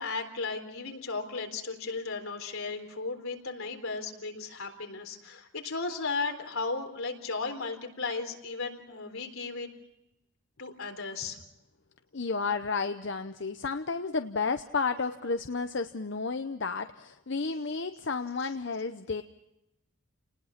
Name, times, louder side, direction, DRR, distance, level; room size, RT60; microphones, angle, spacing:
voice 1, 0.0-9.7 10.6-11.4, left 4 dB, 75° left, 4 dB, 3.9 m, -35 dB
voice 2, 12.1-19.2, left 4 dB, 55° left, 8 dB, 0.8 m, -32 dB
30.0 x 20.0 x 5.9 m, 0.90 s
head